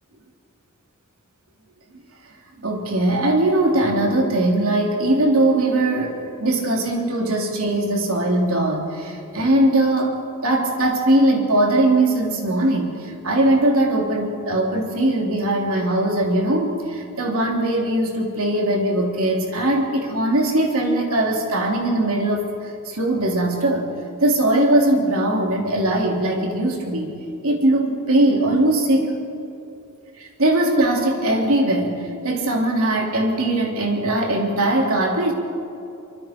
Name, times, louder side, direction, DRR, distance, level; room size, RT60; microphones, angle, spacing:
voice 1, 2.6-22.5 22.9-23.9 24.2-27.2 27.4-29.1 30.2-35.3, right 1 dB, 65° right, 1 dB, 3.3 m, -20 dB
25.0 x 24.5 x 4.6 m, 2.7 s
head